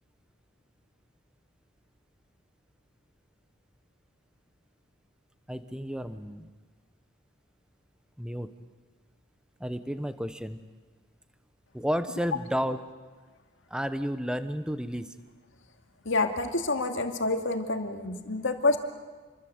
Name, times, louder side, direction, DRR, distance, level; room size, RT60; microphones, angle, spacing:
voice 1, 5.5-6.5 8.2-8.5 9.6-10.6 11.7-12.8 13.7-15.1, equal, 5° right, 10 dB, 1.0 m, -32 dB
voice 2, 16.0-18.8, left 3 dB, 70° left, 5 dB, 2.4 m, -27 dB
28.0 x 23.5 x 8.1 m, 1.4 s
head